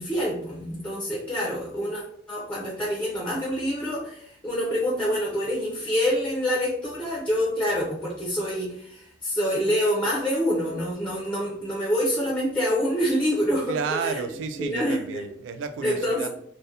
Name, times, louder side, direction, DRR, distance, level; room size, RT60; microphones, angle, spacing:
voice 1, 0.0-2.0 2.3-14.2 14.6-15.2 15.8-16.3, equal, 10° left, -4 dB, 0.4 m, -26 dB
voice 2, 13.7-16.3, right 5 dB, 90° right, 10 dB, 0.3 m, -31 dB
2.3 x 2.0 x 2.7 m, 0.68 s
head